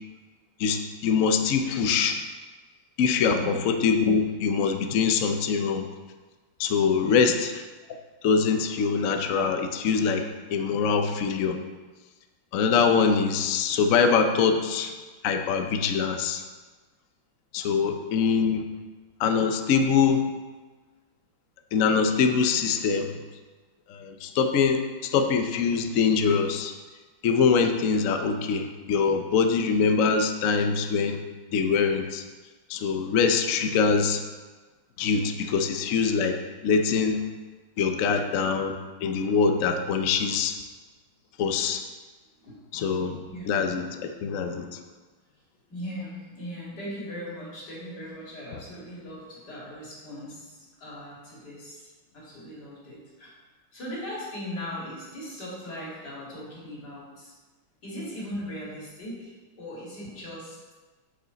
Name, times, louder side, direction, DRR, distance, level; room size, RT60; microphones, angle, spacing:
voice 1, 0.6-2.2 3.0-5.9 6.6-7.5 8.2-11.6 12.5-14.9 15.2-16.4 17.5-18.6 19.2-20.2 21.7-23.1 23.9-26.7 27.2-31.2 31.5-32.2 32.7-34.2 35.0-37.2 37.8-40.5 41.4-41.8 42.7-43.2 43.5-44.8, left 5 dB, 80° left, 6 dB, 0.7 m, -24 dB
voice 2, 3.3-3.6 7.0-7.3 17.7-17.8 42.4-42.6 43.2-43.5 45.7-53.3 53.7-57.3 57.8-60.7, equal, 50° left, -6 dB, 3.1 m, -39 dB
8.9 x 7.1 x 4.0 m, 1.3 s
omnidirectional pair, 2.3 m